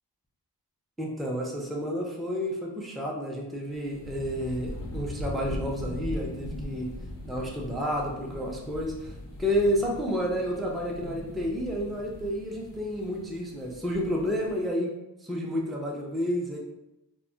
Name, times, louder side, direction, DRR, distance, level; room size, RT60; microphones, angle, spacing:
voice 1, 1.0-6.9 7.2-9.1 9.4-14.9 15.2-16.6, equal, ahead, -2 dB, 0.4 m, -30 dB
sound 1, 3.7-14.7, left 1 dB, 85° left, 0.6 m, -40 dB
2.2 x 2.0 x 3.7 m, 0.93 s
wide cardioid pair, 60°, 43 cm